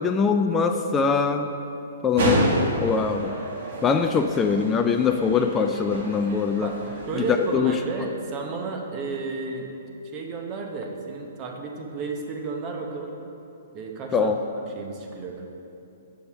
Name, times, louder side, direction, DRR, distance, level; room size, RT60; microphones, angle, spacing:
voice 1, 0.0-1.5 2.0-3.3 3.8-6.7 7.1-7.2 7.5-7.7 14.1-14.4, left 5 dB, 15° left, 5 dB, 0.3 m, -22 dB
sound 1, 2.2-7.6, right 1 dB, 65° right, 1.8 m, -29 dB
voice 2, 7.1-9.7 10.0-13.1 13.7-14.3 14.7-15.4, right 4 dB, 30° right, 2 dB, 1.0 m, -32 dB
7.0 x 5.1 x 6.2 m, 2.8 s
hypercardioid pair, 140°, 0 cm